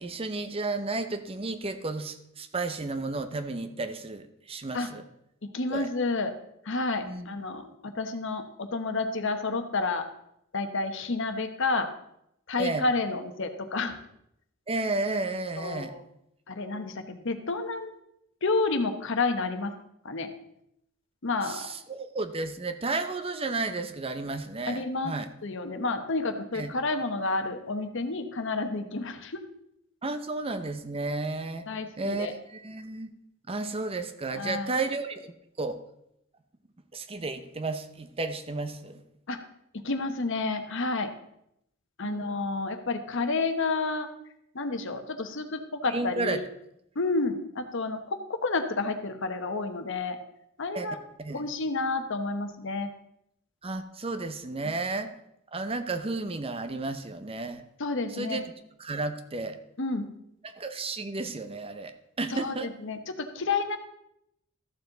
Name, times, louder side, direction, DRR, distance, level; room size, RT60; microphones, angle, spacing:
voice 1, 0.0-5.0 5.7-5.9 7.0-7.3 12.6-12.8 14.7-15.9 21.4-25.3 26.5-26.7 30.0-31.7 32.0-33.1 33.5-35.2 35.6-35.8 36.9-39.0 42.0-42.2 45.9-46.4 50.7-50.9 51.2-51.4 53.6-55.1 55.5-57.7 58.1-58.5 58.8-59.6 60.4-62.7, right 3 dB, 25° right, 9 dB, 0.7 m, -32 dB
voice 2, 5.4-6.3 6.6-10.1 10.5-11.9 12.5-14.0 15.6-16.0 16.5-17.9 18.4-19.7 20.0-20.3 21.2-21.6 24.7-25.1 25.4-29.4 31.7-32.3 34.3-34.7 39.3-39.4 39.7-41.1 42.0-44.1 44.5-46.4 46.9-50.2 50.6-51.0 51.3-52.9 54.6-54.7 57.8-58.4 59.8-60.1 62.3-63.8, left 3 dB, 60° left, 7 dB, 1.0 m, -30 dB
14.0 x 7.1 x 3.9 m, 0.78 s
head